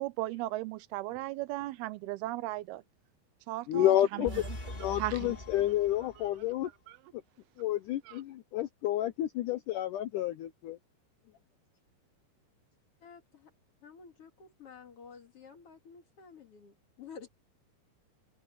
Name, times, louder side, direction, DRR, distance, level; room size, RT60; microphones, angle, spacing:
voice 1, 0.0-2.8 3.5-4.3 5.0-5.3 8.1-8.2, right 17 dB, 85° right, 2.5 m, -36 dB
voice 2, 3.7-4.4 4.7-6.7 7.6-10.8, left 13 dB, 80° left, 1.9 m, -30 dB
sound 1, 4.2-6.5, left 1 dB, 10° left, 3.1 m, -43 dB
voice 3, 13.0-13.5 13.8-17.3, left 6 dB, 45° left, 2.3 m, -51 dB
omnidirectional pair, 4.5 m